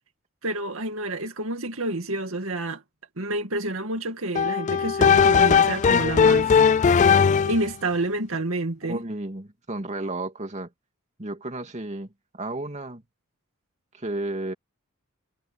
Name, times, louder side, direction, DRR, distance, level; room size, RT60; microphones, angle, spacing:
voice 1, 0.4-2.8 3.2-6.6 6.8-6.9 7.5-9.0, right 2 dB, 70° right, 2.2 m, -29 dB
sound 1, 4.3-7.7, left 6 dB, 35° left, 0.3 m, -18 dB
voice 2, 8.8-10.7 11.2-13.0 13.9-14.5, right 2 dB, 35° right, 2.5 m, -33 dB
head